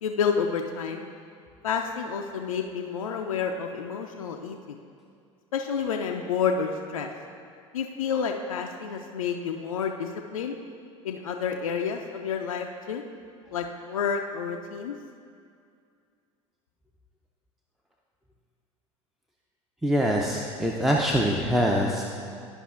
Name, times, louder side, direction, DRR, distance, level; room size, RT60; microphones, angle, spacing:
voice 1, 0.0-1.1 1.6-4.8 5.5-7.1 7.7-10.6 11.0-13.0 13.5-14.9, left 6 dB, 80° left, 2 dB, 0.4 m, -29 dB
voice 2, 19.8-22.0, equal, ahead, -1 dB, 0.5 m, -24 dB
11.5 x 5.3 x 2.4 m, 2.3 s
figure-of-eight pair, 75°, 17 cm